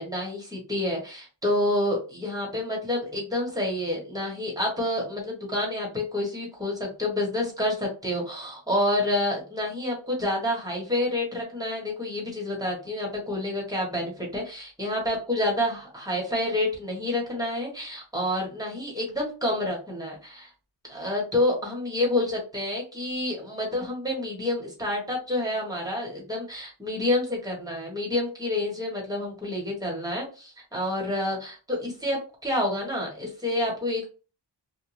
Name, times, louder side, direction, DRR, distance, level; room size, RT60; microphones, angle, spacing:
voice 1, 0.0-20.5 20.9-34.1, left 1 dB, 10° right, -2 dB, 1.3 m, -28 dB
2.6 x 2.2 x 3.1 m, 0.35 s
wide cardioid pair, 125°, 42 cm